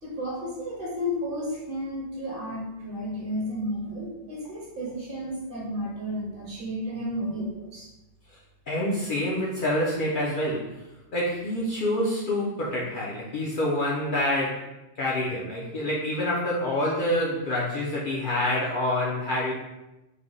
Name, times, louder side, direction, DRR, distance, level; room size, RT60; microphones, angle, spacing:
voice 1, 0.0-7.9, equal, 50° right, -4 dB, 1.0 m, -32 dB
voice 2, 8.7-10.7 11.1-14.7 15.0-19.5, left 1 dB, 55° left, -5 dB, 0.6 m, -27 dB
3.2 x 2.1 x 3.7 m, 0.97 s
omnidirectional pair, 1.2 m